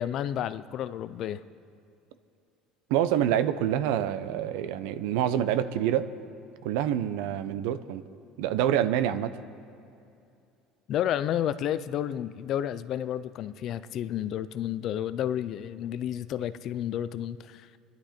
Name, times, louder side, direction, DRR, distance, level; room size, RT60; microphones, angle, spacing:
voice 1, 0.0-1.4 10.9-17.8, left 10 dB, 40° left, 14 dB, 0.4 m, -31 dB
voice 2, 2.9-6.1 6.6-8.0 8.4-9.4, right 10 dB, 80° right, 12 dB, 0.7 m, -26 dB
25.5 x 11.0 x 4.4 m, 2.6 s
cardioid pair, 175°, 0 cm